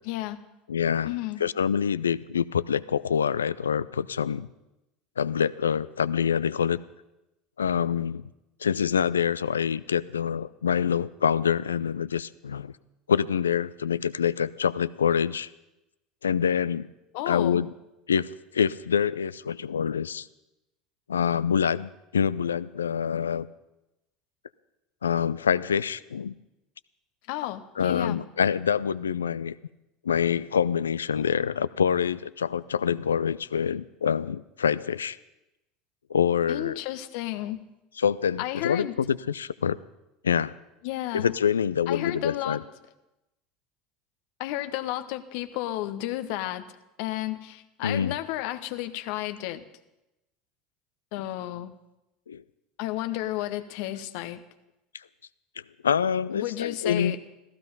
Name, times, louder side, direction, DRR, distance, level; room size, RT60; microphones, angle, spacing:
voice 1, 0.0-0.4 1.0-1.4 17.1-17.6 27.3-28.2 36.5-37.6 38.4-39.0 40.8-41.3 41.9-42.6 44.4-46.6 47.0-49.6 51.1-51.7 52.8-54.4 56.3-57.2, left 15 dB, 60° left, 10 dB, 0.9 m, -32 dB
voice 2, 0.7-1.1 1.4-4.5 5.2-6.8 7.6-8.2 8.6-12.7 13.1-15.5 16.2-16.9 17.3-17.7 18.1-20.3 21.1-23.5 25.0-26.3 27.8-29.5 30.0-35.2 36.1-36.8 38.0-39.8 40.2-40.5 41.1-42.6 47.8-48.1 52.3-52.4 55.8-57.2, left 7 dB, 80° left, 18 dB, 0.4 m, -26 dB
15.0 x 14.5 x 5.4 m, 0.95 s
figure-of-eight pair, 75°, 0 cm